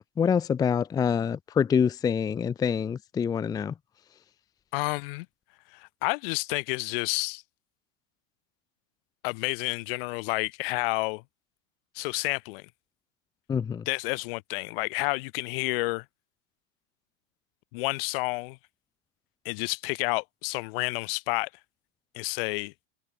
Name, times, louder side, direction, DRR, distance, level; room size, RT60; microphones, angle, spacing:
voice 1, 0.2-3.7 13.5-13.8, left 7 dB, 10° left, 0.7 m, -26 dB
voice 2, 4.7-5.3 5.7-7.4 9.2-11.2 11.9-12.7 13.8-16.0 17.7-18.6 19.4-21.5 22.1-22.7, left 26 dB, 45° left, 1.3 m, -30 dB
supercardioid pair, 170°, 39 cm